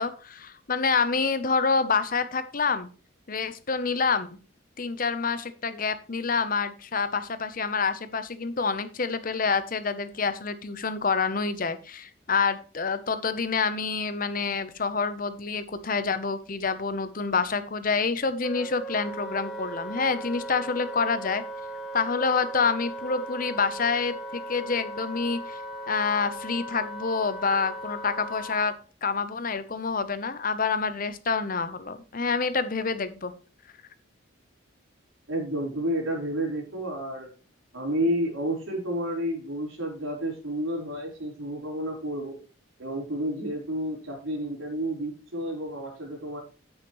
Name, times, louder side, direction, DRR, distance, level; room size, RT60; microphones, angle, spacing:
voice 1, 0.0-2.9 3.3-4.4 4.8-21.4 21.9-25.6 25.9-28.7 29.0-33.3, left 5 dB, 45° left, 12 dB, 0.9 m, -27 dB
Wind instrument woodwind instrument, 18.4-28.7, right 1 dB, ahead, 2.2 m, -38 dB
voice 2, 35.3-37.3 37.7-42.4 42.8-46.4, equal, 80° right, 0 dB, 4.7 m, -30 dB
9.7 x 8.9 x 3.2 m, 0.36 s
head